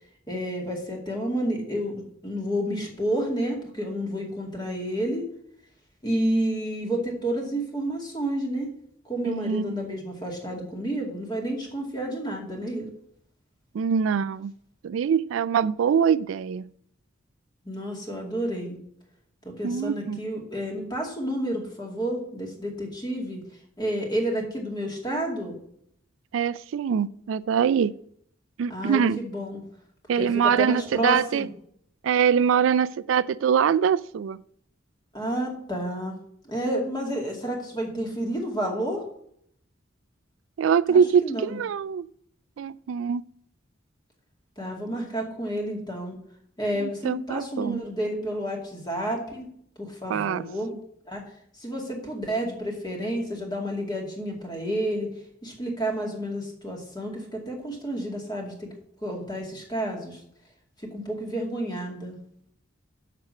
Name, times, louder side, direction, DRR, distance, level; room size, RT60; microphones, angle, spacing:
voice 1, 0.3-1.9 2.2-5.2 6.0-8.7 9.0-12.9 17.6-18.8 19.4-23.4 23.8-25.6 28.7-29.6 30.2-31.5 35.1-36.2 36.4-39.0 40.9-41.6 44.6-46.2 46.6-49.5 49.8-50.7 51.1-51.2 51.6-55.1 55.4-58.7 59.0-60.2 60.8-62.2, right 1 dB, 20° left, 0 dB, 2.4 m, -30 dB
voice 2, 9.3-9.8 13.7-14.5 14.8-16.7 19.6-20.2 26.3-27.9 28.6-29.2 30.1-31.5 32.0-34.4 40.6-42.1 42.6-43.2 46.8-47.8 50.1-50.5, right 7 dB, 80° right, 17 dB, 0.3 m, -23 dB
7.4 x 6.1 x 7.6 m, 0.69 s
head